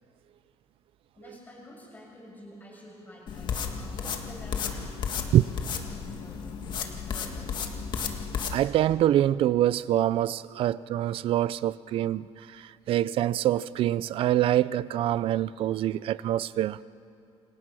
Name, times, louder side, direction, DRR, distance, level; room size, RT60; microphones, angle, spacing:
voice 1, 1.1-6.7 7.0-7.5, left 1 dB, 15° left, 6.7 m, -48 dB
sound 1, 3.3-8.6, left 6 dB, 40° left, 1.9 m, -33 dB
voice 2, 8.5-12.3 12.9-16.8, right 12 dB, 50° right, 0.5 m, -25 dB
28.5 x 26.0 x 6.3 m
cardioid pair, 170°, 12 cm